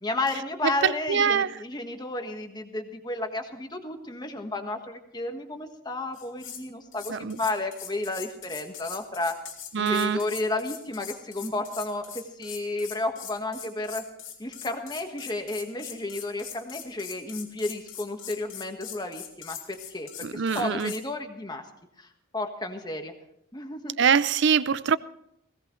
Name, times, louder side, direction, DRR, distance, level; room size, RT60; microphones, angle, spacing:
voice 1, 0.0-9.4 9.8-14.0 14.4-21.6 22.0-23.1 23.5-24.0, left 2 dB, 20° left, 1.5 m, -32 dB
voice 2, 0.8-1.5 7.1-7.4 9.7-10.2 20.2-20.9 24.0-25.0, right 7 dB, 55° right, 0.5 m, -23 dB
sound 1, 6.1-6.6 6.9-21.0, left 9 dB, 70° left, 2.8 m, -42 dB
20.0 x 17.0 x 3.2 m
head